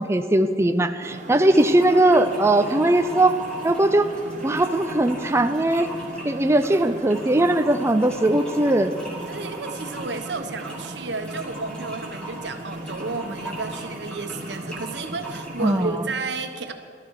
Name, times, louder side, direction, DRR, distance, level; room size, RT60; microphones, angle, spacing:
voice 1, 0.0-3.4 3.6-4.1 4.4-5.9 6.2-8.9 15.6-16.1, right 1 dB, 15° right, 7 dB, 0.5 m, -20 dB
sound 1, 1.0-16.2, right 1 dB, 45° right, 1.2 m, -38 dB
voice 2, 1.3-1.6 9.3-16.7, right 3 dB, 80° right, 6 dB, 1.3 m, -32 dB
sound 2, 1.4-15.9, right 2 dB, 5° left, 2.9 m, -40 dB
17.5 x 13.0 x 4.9 m, 2.5 s
head